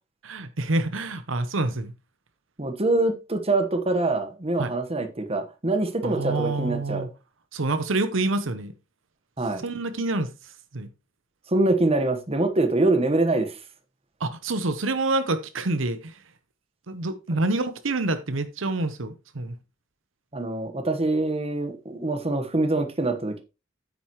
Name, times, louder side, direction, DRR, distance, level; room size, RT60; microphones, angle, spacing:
voice 1, 0.2-1.9 4.6-4.7 6.0-7.1 7.5-8.7 9.6-10.9 14.2-16.2 16.9-19.5, right 2 dB, 75° right, 0.9 m, -27 dB
voice 2, 2.6-7.1 9.4-9.6 11.5-13.6 20.3-23.4, right 2 dB, 30° right, 1.3 m, -24 dB
9.3 x 9.0 x 3.1 m
head